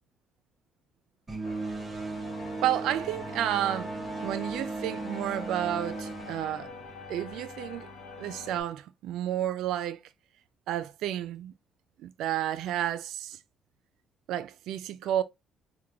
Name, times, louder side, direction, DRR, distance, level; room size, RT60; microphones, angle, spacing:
sound 1, 1.3-7.3, right 3 dB, 15° right, 0.5 m, -37 dB
sound 2, 1.4-8.6, left 3 dB, 80° left, 0.8 m, -43 dB
voice 1, 2.6-3.9 4.2-6.7 7.1-7.9 8.2-10.0 10.7-11.5 12.0-13.4 14.3-15.2, right 11 dB, 85° right, 0.4 m, -31 dB
4.7 x 2.2 x 2.8 m
cardioid pair, 175°, 0 cm